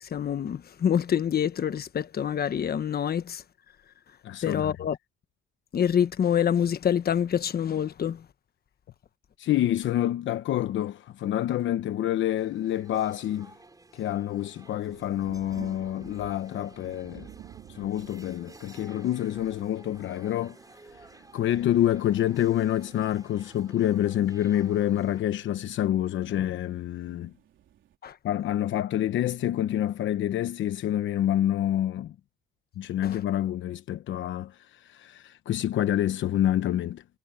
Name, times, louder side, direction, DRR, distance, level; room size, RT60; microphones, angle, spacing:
voice 1, 0.0-3.4 4.4-5.0 5.7-8.2 28.0-28.1 33.0-33.2, left 8 dB, 50° left, 1.3 m, -26 dB
voice 2, 4.2-4.7 9.4-13.5 13.9-17.3 17.7-20.6 21.3-27.3 28.2-32.1 32.8-37.0, left 12 dB, 75° left, 0.9 m, -27 dB
sound 1, 12.4-25.2, right 2 dB, 20° right, 5.7 m, -53 dB
sound 2, 14.0-14.1 14.5-28.0, right 11 dB, 75° right, 3.8 m, -52 dB
cardioid pair, 90°, 20 cm